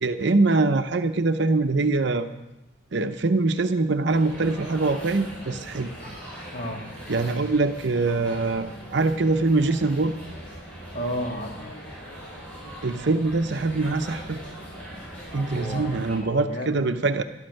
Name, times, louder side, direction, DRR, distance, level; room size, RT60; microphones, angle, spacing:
voice 1, 0.0-2.3 2.9-5.9 7.1-10.1 12.8-14.4 15.3-17.2, right 3 dB, 55° right, 8 dB, 0.6 m, -23 dB
sound 1, 4.1-16.2, equal, 5° left, 6.9 m, -40 dB
voice 2, 6.5-6.8 10.9-11.6 15.5-16.8, equal, 40° left, 2 dB, 1.9 m, -32 dB
13.0 x 12.5 x 6.5 m, 0.96 s
head